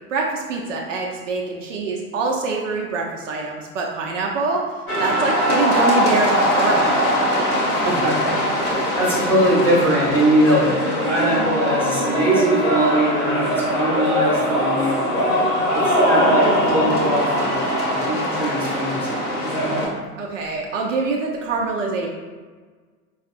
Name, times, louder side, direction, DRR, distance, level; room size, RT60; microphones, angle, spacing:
voice 1, 0.1-4.7 5.0-7.0 8.6-8.9 20.2-22.1, right 3 dB, 55° right, -1 dB, 0.5 m, -25 dB
sound 1, 4.9-19.9, equal, 75° left, 1.0 m, -21 dB
voice 2, 7.8-10.8 11.0-15.2 15.7-17.6 17.9-19.2, right 1 dB, 5° left, -8 dB, 0.9 m, -21 dB
4.6 x 2.3 x 2.5 m, 1.4 s
figure-of-eight pair, 85°, 46 cm